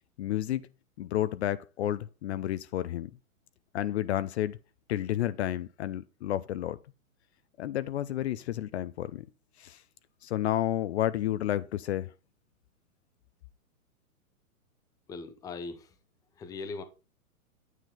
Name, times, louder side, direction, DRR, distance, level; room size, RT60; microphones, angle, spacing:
voice 1, 0.2-0.6 1.0-3.1 3.7-4.6 4.9-6.8 7.6-9.3 9.6-9.8 10.2-12.1, left 12 dB, 50° left, 0.6 m, -31 dB
voice 2, 15.1-16.0 16.4-16.8, left 4 dB, 10° left, 0.6 m, -39 dB
9.3 x 7.5 x 3.8 m
hypercardioid pair, 135°, 44 cm